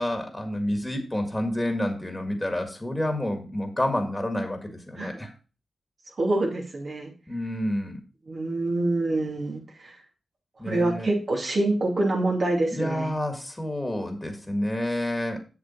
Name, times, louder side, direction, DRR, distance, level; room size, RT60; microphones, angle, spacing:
voice 1, 0.0-5.3 7.3-8.0 10.6-11.1 12.7-15.4, left 1 dB, 15° left, 5 dB, 1.9 m, -29 dB
voice 2, 6.2-7.1 8.3-10.0 10.6-13.1, right 2 dB, 60° right, -1 dB, 2.8 m, -26 dB
7.3 x 7.1 x 4.3 m, 0.33 s
cardioid pair, 55°, 0 cm